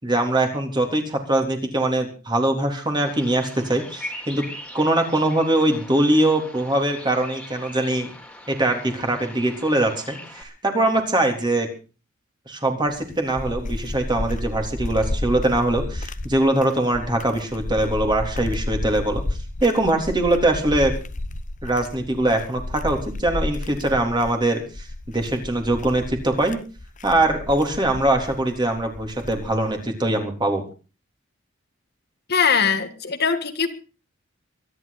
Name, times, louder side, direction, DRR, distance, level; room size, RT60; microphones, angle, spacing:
voice 1, 0.0-4.4 4.7-8.1 8.5-11.7 12.5-19.2 19.6-21.0 21.6-26.6 27.0-30.6, right 1 dB, 25° right, 3 dB, 3.6 m, -22 dB
Bird vocalization bird call bird song, 3.0-10.4, left 1 dB, 5° left, 3.6 m, -40 dB
sound 1, 12.9-29.7, left 2 dB, 40° left, 0.9 m, -32 dB
voice 2, 32.3-33.7, left 6 dB, 55° left, 8 dB, 1.8 m, -21 dB
24.0 x 11.0 x 4.2 m, 0.35 s
head